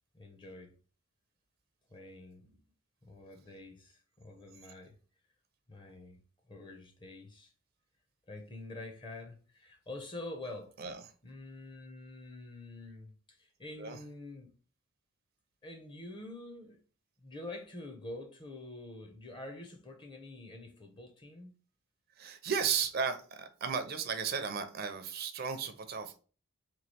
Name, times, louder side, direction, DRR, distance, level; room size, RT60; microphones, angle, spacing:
voice 1, 0.1-0.7 1.9-2.6 3.0-5.0 5.7-6.2 6.5-7.5 8.3-10.7 11.2-14.5 15.6-16.8 17.2-21.5, left 2 dB, 25° left, 0.6 m, -47 dB
voice 2, 22.2-26.2, right 6 dB, 45° right, 0.4 m, -34 dB
3.0 x 2.4 x 4.2 m
head